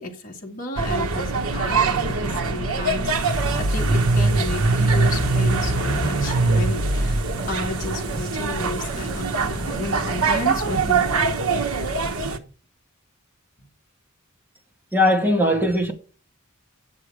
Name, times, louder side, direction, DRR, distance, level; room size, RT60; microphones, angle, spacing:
voice 1, 0.0-11.3, left 2 dB, 40° left, 2.2 m, -32 dB
sound 1, 0.8-12.4, right 3 dB, 80° right, 1.2 m, -22 dB
voice 2, 14.9-15.9, left 1 dB, 10° right, 2.2 m, -19 dB
10.5 x 7.6 x 4.9 m
head